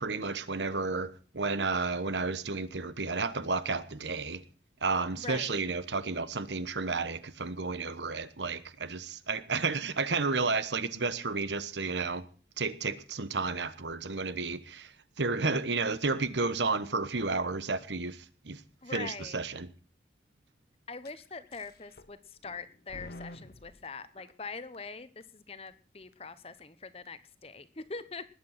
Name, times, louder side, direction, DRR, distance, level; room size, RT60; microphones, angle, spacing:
voice 1, 0.0-4.4 4.8-12.2 12.6-14.9 15.2-18.6 18.9-19.7, right 4 dB, 85° right, 1.2 m, -32 dB
voice 2, 5.2-5.6 18.8-19.4 20.9-28.2, left 4 dB, 35° left, 1.0 m, -43 dB
sound 1, 21.0-21.1 21.5-22.2 22.4-23.9 24.3-24.4 24.7-24.8 25.2-25.3 25.7-25.8 26.1-26.2 26.6-26.7 27.0-27.1, left 1 dB, 55° left, 1.2 m, -48 dB
20.0 x 8.4 x 5.8 m
head